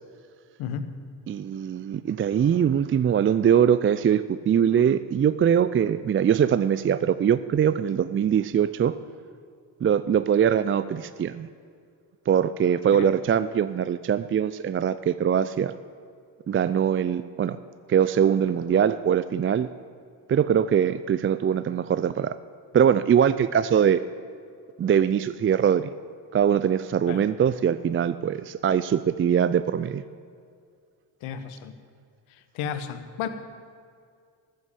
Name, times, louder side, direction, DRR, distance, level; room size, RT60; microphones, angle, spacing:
voice 1, 1.3-8.9 9.8-11.5 12.3-15.7 16.5-17.6 17.9-19.7 20.3-22.4 22.7-24.0 24.8-25.9 26.3-30.0, right 8 dB, 30° right, 14 dB, 0.4 m, -22 dB
voice 2, 31.2-31.7 32.5-33.3, left 8 dB, 75° left, 10 dB, 1.1 m, -32 dB
13.5 x 7.9 x 8.3 m, 2.2 s
hypercardioid pair, 50°, 50 cm